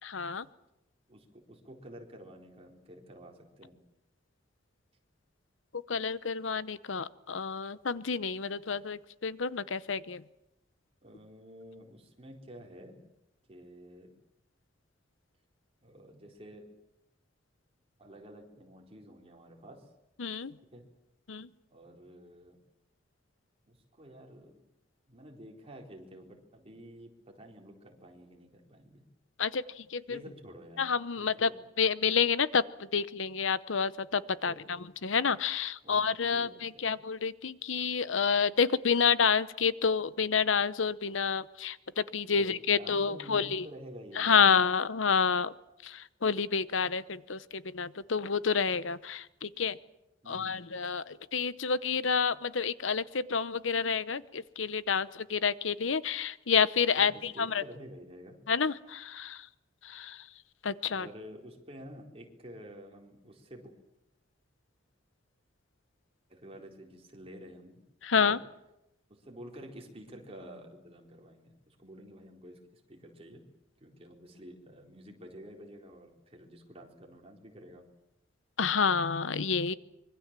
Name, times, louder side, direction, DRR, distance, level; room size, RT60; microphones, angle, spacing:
voice 1, 0.0-0.5 5.9-10.2 20.2-20.5 21.3-21.5 29.4-30.2 30.8-31.5 31.8-43.7 44.1-45.5 45.8-49.8 50.3-57.6 58.5-59.5 59.8-60.3 60.6-61.1 68.0-68.4 78.6-79.7, left 6 dB, 85° left, 16 dB, 0.9 m, -29 dB
voice 2, 1.1-3.8 11.0-13.0 13.5-14.2 15.8-16.7 18.0-19.9 20.7-20.9 21.7-22.6 23.7-24.6 25.1-29.0 30.1-30.8 31.1-31.5 34.4-34.9 35.8-36.0 36.3-36.9 42.3-44.5 50.2-50.7 57.0-57.1 57.3-58.4 60.9-63.7 66.3-67.8 68.2-68.4 69.1-73.4 73.8-77.8, equal, 30° right, 1 dB, 4.1 m, -50 dB
25.0 x 23.0 x 7.5 m, 0.89 s
head